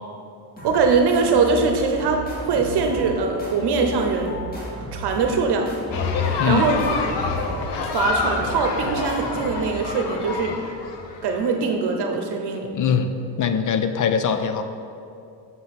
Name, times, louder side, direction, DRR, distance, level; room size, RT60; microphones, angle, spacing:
sound 1, 0.6-10.1, right 1 dB, 20° left, 2.2 m, -35 dB
voice 1, 0.6-4.4 4.9-5.7 6.4-6.8 7.8-10.5 11.2-12.7, right 4 dB, 70° right, 4 dB, 0.8 m, -22 dB
sound 2, 5.9-11.5, left 4 dB, 85° left, 1.0 m, -27 dB
voice 2, 12.7-13.1 13.4-14.6, left 6 dB, 50° left, 8 dB, 0.6 m, -21 dB
7.7 x 5.7 x 5.8 m, 2.6 s
cardioid pair, 140°, 41 cm